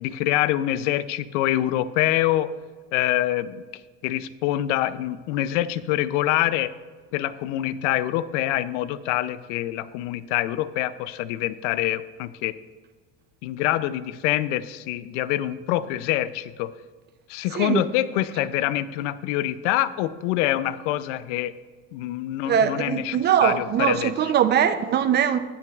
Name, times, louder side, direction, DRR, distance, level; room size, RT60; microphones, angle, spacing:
voice 1, 0.0-2.5 2.9-3.6 4.0-6.7 7.1-12.5 13.4-16.7 17.3-21.5 21.9-24.3, left 14 dB, 85° left, 0.5 m, -25 dB
voice 2, 22.5-25.4, right 9 dB, 30° right, 0.5 m, -21 dB
18.0 x 6.0 x 2.3 m
supercardioid pair, 130°, 35 cm